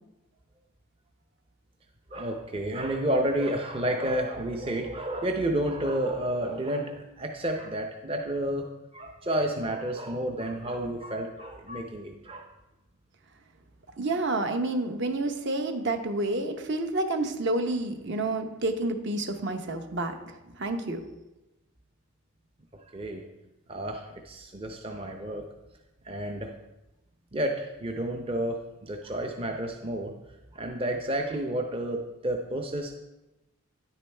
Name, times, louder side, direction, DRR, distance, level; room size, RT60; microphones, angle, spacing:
voice 1, 2.1-8.6 8.9-12.5 22.9-23.2 23.7-25.4 26.0-26.5 27.3-30.1 30.5-33.0, right 1 dB, 25° right, 3 dB, 0.6 m, -30 dB
voice 2, 14.0-20.1 20.6-21.0, right 2 dB, 55° right, 6 dB, 0.9 m, -29 dB
10.0 x 8.7 x 3.4 m, 0.99 s
head